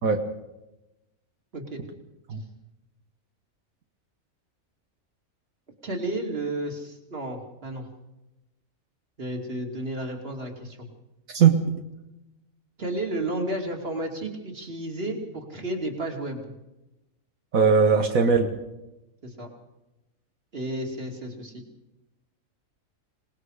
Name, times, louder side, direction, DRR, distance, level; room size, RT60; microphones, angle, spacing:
voice 1, 5.8-7.9 9.2-10.9 12.8-16.5 19.2-19.5 20.5-21.6, right 1 dB, 45° right, 2 dB, 3.0 m, -32 dB
voice 2, 17.5-18.5, right 6 dB, 85° right, 4 dB, 1.8 m, -19 dB
27.0 x 19.0 x 5.0 m, 0.97 s
omnidirectional pair, 1.4 m